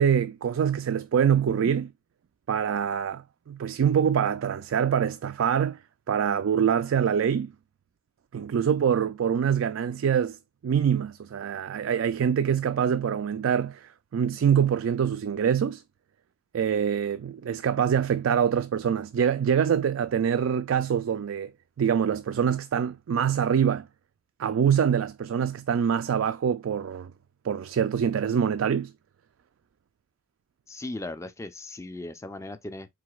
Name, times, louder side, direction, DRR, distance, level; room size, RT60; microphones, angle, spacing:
voice 1, 0.0-1.9 2.5-5.8 6.1-7.5 8.3-10.4 10.6-15.8 16.5-21.5 21.8-23.9 24.4-27.1 27.4-28.9, right 8 dB, 65° right, 0.3 m, -25 dB
voice 2, 30.7-32.9, left 2 dB, 15° left, 0.4 m, -37 dB
4.8 x 3.7 x 2.4 m
head